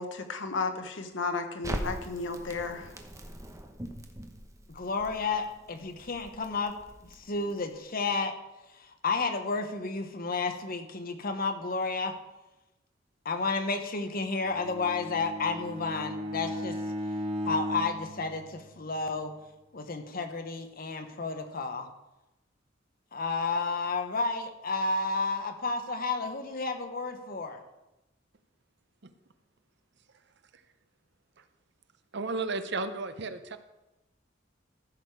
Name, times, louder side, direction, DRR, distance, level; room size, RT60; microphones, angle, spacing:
voice 1, 0.0-2.9, left 4 dB, 75° left, 7 dB, 1.1 m, -33 dB
Crackle, 1.6-7.8, right 1 dB, 15° right, 1.0 m, -41 dB
voice 2, 4.7-6.7 7.3-8.3 9.0-12.1 13.2-16.7 17.4-19.3 19.7-21.9 23.1-27.6, left 3 dB, 50° left, 6 dB, 1.1 m, -31 dB
Bowed string instrument, 14.4-19.0, left 1 dB, 35° right, 1.7 m, -36 dB
voice 3, 32.1-33.6, right 3 dB, 65° right, 10 dB, 0.8 m, -33 dB
14.5 x 6.6 x 4.8 m, 0.99 s
head